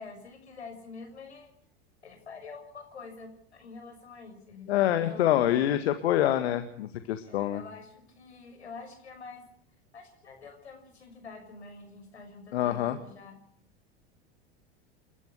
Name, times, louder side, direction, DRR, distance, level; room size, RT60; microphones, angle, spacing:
voice 1, 0.0-1.5 2.0-5.6 7.2-9.5 9.9-13.4, left 4 dB, 90° left, 5 dB, 6.5 m, -47 dB
voice 2, 4.7-7.6 12.5-13.0, left 12 dB, 70° left, 9 dB, 1.8 m, -26 dB
29.0 x 12.5 x 8.3 m, 0.65 s
hypercardioid pair, 85°, 32 cm